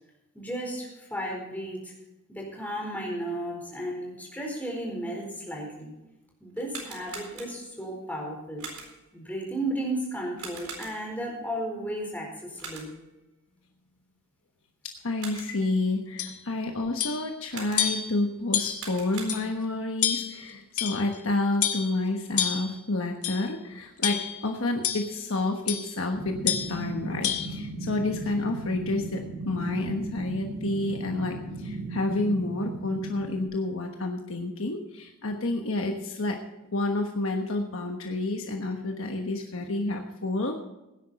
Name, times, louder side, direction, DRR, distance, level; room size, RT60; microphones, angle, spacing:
voice 1, 0.3-1.9 2.3-5.9 6.4-8.6 9.1-12.9, right 1 dB, 5° left, -1 dB, 4.3 m, -34 dB
sound 1, 6.5-7.8 8.6-9.2 10.4-11.3 12.6-13.1 15.0-15.7 17.5-18.1 18.6-19.8, right 4 dB, 85° right, 4.2 m, -43 dB
voice 2, 14.8-36.4 36.7-40.6, left 2 dB, 65° left, 3 dB, 1.3 m, -29 dB
sound 2, 16.2-16.4 17.0-17.3 17.8-18.1 18.5-18.9 19.3-19.4 20.0-20.4 20.8-21.2 21.6-21.9 22.4-22.7 23.2-23.5 24.0-24.4 24.8-25.1 25.7-25.9 26.5-26.8 27.2-27.5, left 10 dB, 90° left, 1.6 m, -28 dB
sound 3, 26.1-33.4, right 2 dB, 70° right, 4.1 m, -36 dB
17.0 x 10.5 x 4.3 m, 0.96 s
head